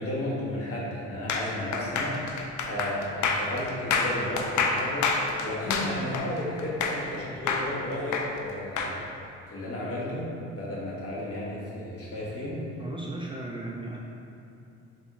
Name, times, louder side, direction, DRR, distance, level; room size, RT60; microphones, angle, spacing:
voice 1, 0.0-8.9 9.5-12.6, left 1 dB, 50° left, -6 dB, 1.2 m, -33 dB
sound 1, 1.3-7.2 7.5-8.9, left 4 dB, 70° left, 0.5 m, -28 dB
voice 2, 12.8-14.0, right 2 dB, 20° right, -3 dB, 0.3 m, -36 dB
4.1 x 3.5 x 3.0 m, 2.6 s
cardioid pair, 90°, 30 cm